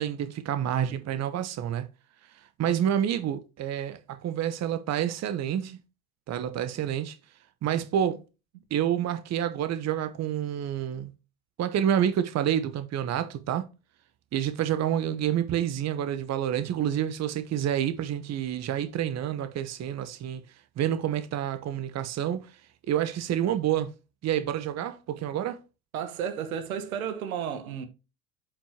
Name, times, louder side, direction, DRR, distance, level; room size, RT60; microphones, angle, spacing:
voice 1, 0.0-1.9 2.3-5.8 6.3-7.2 7.6-8.2 8.7-11.1 11.6-13.7 14.3-20.4 20.8-22.6 22.9-23.9 24.2-25.6, right 10 dB, 40° right, 1.0 m, -28 dB
voice 2, 25.9-27.9, right 8 dB, 80° right, 1.5 m, -32 dB
8.6 x 5.6 x 2.9 m
hypercardioid pair, 75°, 42 cm